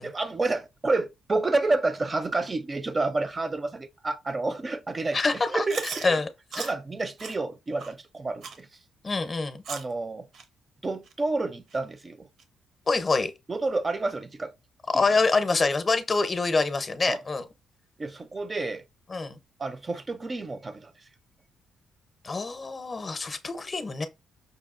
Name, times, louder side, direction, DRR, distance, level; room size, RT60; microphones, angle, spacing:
voice 1, 0.0-5.2 5.5-6.2 6.5-8.7 9.7-10.3 10.8-12.3 13.5-14.5 17.0-17.2 18.0-18.8 19.6-20.9, right 3 dB, 30° right, 0.3 m, -29 dB
voice 2, 5.1-6.3 6.5-6.7 9.0-9.6 12.9-13.3 14.9-17.5 19.1-19.4 22.2-24.1, left 3 dB, 35° left, 0.5 m, -26 dB
Chewing mastication, 5.7-6.1 6.5-6.7 7.2-7.4 7.8-7.9 8.4-8.6 9.1-9.2 9.6-9.9 10.3-10.4 11.1-11.2 11.7-11.8 12.4-12.5, right 5 dB, 70° right, 0.6 m, -37 dB
5.3 x 2.2 x 2.4 m
cardioid pair, 90°, 0 cm